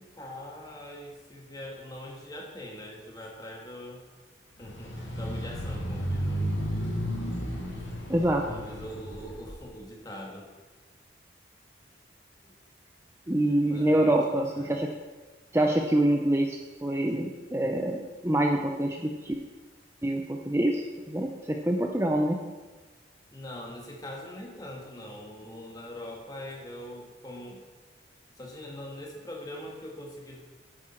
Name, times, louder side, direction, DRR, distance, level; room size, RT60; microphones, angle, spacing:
voice 1, 0.0-4.0 4.6-6.4 8.4-10.5 12.4-12.6 13.5-14.8 18.1-18.2 23.3-27.6 28.4-30.4, left 1 dB, 20° left, 0 dB, 1.7 m, -42 dB
sound 1, 4.6-9.6, equal, 80° left, 2.6 m, -33 dB
voice 2, 8.1-8.4 13.3-14.9 15.5-19.4 20.0-22.4, right 1 dB, 15° right, 1 dB, 0.6 m, -26 dB
9.9 x 9.7 x 4.4 m, 1.3 s
head